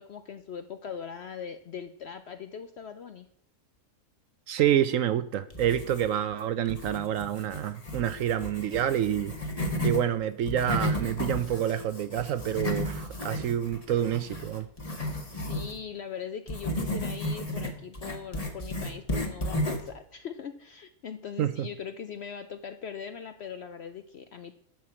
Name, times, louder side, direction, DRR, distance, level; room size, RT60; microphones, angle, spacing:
voice 1, 0.0-3.3 8.7-8.8 15.5-24.5, left 7 dB, 60° left, 9 dB, 0.7 m, -40 dB
voice 2, 4.5-9.3 9.8-14.7 21.4-21.7, right 10 dB, 70° right, 14 dB, 0.9 m, -28 dB
sound 1, 5.5-6.3 6.7-10.0 10.4-15.8 16.5-19.9, left 1 dB, 25° left, 1.3 m, -33 dB
12.0 x 4.7 x 7.1 m, 0.70 s
omnidirectional pair, 1.6 m